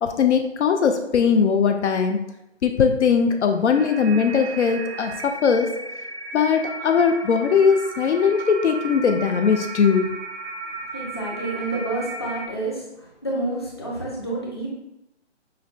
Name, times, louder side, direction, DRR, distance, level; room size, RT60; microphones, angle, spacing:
voice 1, 0.0-2.2 2.6-5.7 6.3-10.1, left 6 dB, 75° left, 5 dB, 0.5 m, -20 dB
sound 1, 3.7-12.5, right 3 dB, 65° right, 0.5 m, -35 dB
voice 2, 10.9-14.7, right 2 dB, 25° left, -4 dB, 0.5 m, -29 dB
5.6 x 2.1 x 2.4 m, 0.88 s
hypercardioid pair, 160°, 35 cm